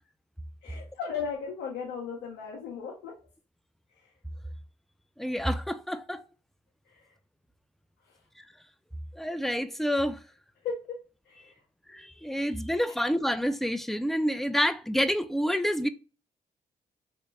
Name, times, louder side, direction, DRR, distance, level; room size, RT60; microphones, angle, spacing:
voice 1, 0.6-3.1 3.9-4.1 6.9-7.1 8.1-8.2 10.6-11.0 11.2-11.6, left 6 dB, 85° left, 0.7 m, -36 dB
voice 2, 5.2-6.2 9.1-10.2 11.9-15.9, equal, ahead, 0.4 m, -28 dB
3.1 x 2.9 x 3.3 m
supercardioid pair, 45°, 17 cm